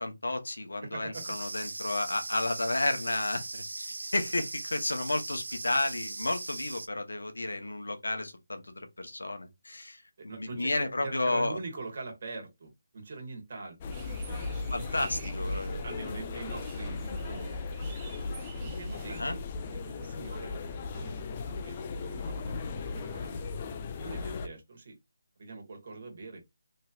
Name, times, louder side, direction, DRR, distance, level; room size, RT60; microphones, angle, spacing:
voice 1, 0.0-10.0 10.4-11.6 14.7-15.9 19.2-19.3, left 2 dB, 85° left, 0.8 m, -32 dB
voice 2, 0.8-1.2 10.2-14.0 14.3-14.7 15.4-15.5 15.8-17.7 18.6-19.4 19.8-23.4 24.0-25.0 25.4-26.4, right 3 dB, 50° right, 1.5 m, -43 dB
sound 1, 1.1-6.9, right 2 dB, 80° right, 0.5 m, -39 dB
sound 2, 13.8-24.5, left 3 dB, 30° left, 0.4 m, -37 dB
sound 3, 13.9-19.2, right 5 dB, 20° right, 0.6 m, -50 dB
3.2 x 2.9 x 2.3 m
figure-of-eight pair, 160°, 0 cm